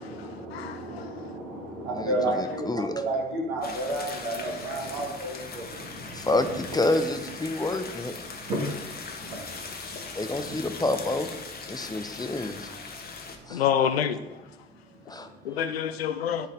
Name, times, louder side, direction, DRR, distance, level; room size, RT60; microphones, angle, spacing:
voice 1, 0.0-6.3 7.5-7.7 8.2-10.6 11.7-13.3 13.6-13.9, right 2 dB, 70° right, 2.0 m, -33 dB
voice 2, 0.5-1.2 13.5-14.2 15.4-16.5, left 9 dB, 80° left, 0.5 m, -27 dB
voice 3, 2.0-3.0 6.1-8.1 10.2-11.3 11.7-12.7 13.5-13.6 15.1-15.3, left 2 dB, 15° left, 0.6 m, -28 dB
sound 1, 3.6-13.4, left 4 dB, 30° left, 1.2 m, -40 dB
11.0 x 4.2 x 3.7 m
figure-of-eight pair, 50°, 30 cm